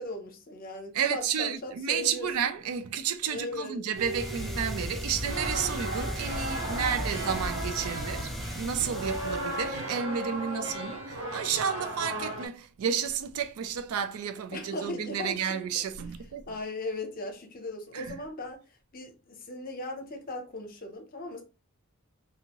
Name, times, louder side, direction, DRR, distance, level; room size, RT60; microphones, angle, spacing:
voice 1, 0.0-2.5 3.3-3.8 10.5-10.7 14.5-15.6 16.5-18.6 18.9-21.4, left 2 dB, 40° left, 0.7 m, -38 dB
voice 2, 0.9-16.5 17.9-18.1, right 7 dB, 75° right, 0.4 m, -31 dB
sound 1, 3.9-9.8, equal, ahead, 0.3 m, -36 dB
sound 2, 3.9-12.5, right 1 dB, 55° right, 0.8 m, -36 dB
2.7 x 2.5 x 2.9 m
head